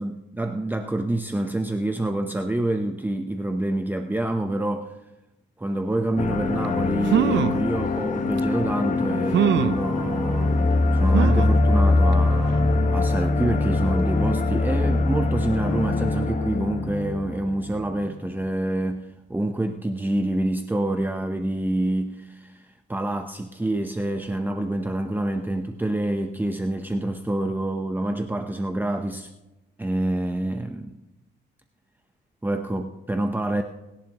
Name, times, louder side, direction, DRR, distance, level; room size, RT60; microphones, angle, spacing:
voice 1, 0.0-5.0 5.6-10.7 10.9-29.3 29.8-31.0 32.4-33.6, right 1 dB, 10° right, 5 dB, 0.9 m, -27 dB
sound 1, 6.2-18.1, left 2 dB, 40° left, 1.2 m, -23 dB
sound 2, 6.6-6.7 7.1-7.6 8.4-8.5 9.3-9.8 11.1-11.6 12.1-12.2 12.5-12.6, right 9 dB, 65° right, 0.7 m, -22 dB
26.5 x 11.0 x 3.0 m, 1.0 s
cardioid pair, 90°, 20 cm